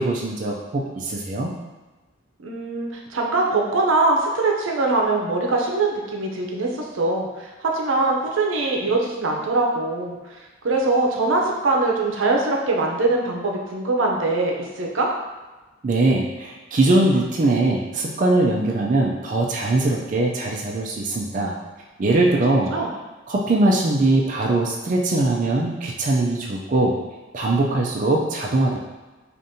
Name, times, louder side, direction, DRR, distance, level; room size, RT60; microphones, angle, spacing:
voice 1, 0.0-1.5 15.8-21.6 22.0-22.7 23.3-27.0 27.3-28.8, right 2 dB, 40° right, -2 dB, 0.4 m, -21 dB
voice 2, 2.4-10.2 10.6-15.1 22.7-22.9, right 2 dB, 85° right, 0 dB, 0.6 m, -22 dB
4.9 x 2.5 x 2.7 m, 1.2 s
head